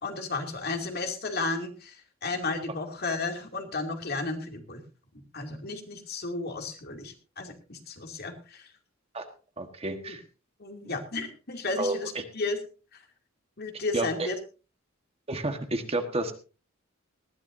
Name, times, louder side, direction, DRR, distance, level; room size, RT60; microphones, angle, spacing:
voice 1, 0.0-4.8 5.1-8.7 10.6-12.6 12.9-13.0 13.6-14.3, left 3 dB, 50° left, 4 dB, 2.6 m, -33 dB
voice 2, 9.6-10.2 11.8-12.2 13.9-14.3 15.3-16.3, right 2 dB, 30° right, 6 dB, 1.4 m, -30 dB
19.5 x 14.5 x 2.7 m, 0.34 s
head